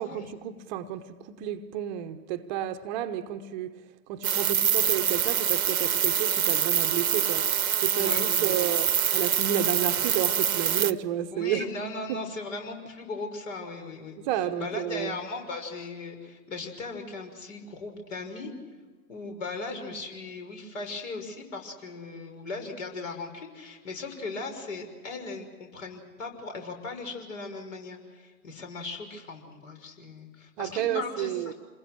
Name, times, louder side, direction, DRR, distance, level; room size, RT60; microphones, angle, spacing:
voice 1, 0.0-11.7 12.1-12.2 14.2-15.2 30.6-31.5, right 11 dB, 30° right, 1.0 m, -31 dB
sound 1, 4.2-10.9, right 8 dB, 70° right, 1.0 m, -25 dB
voice 2, 8.0-8.6 11.3-14.2 14.6-18.5 19.1-31.5, left 3 dB, 55° left, 6.1 m, -38 dB
28.0 x 21.0 x 6.3 m
figure-of-eight pair, 115°, 44 cm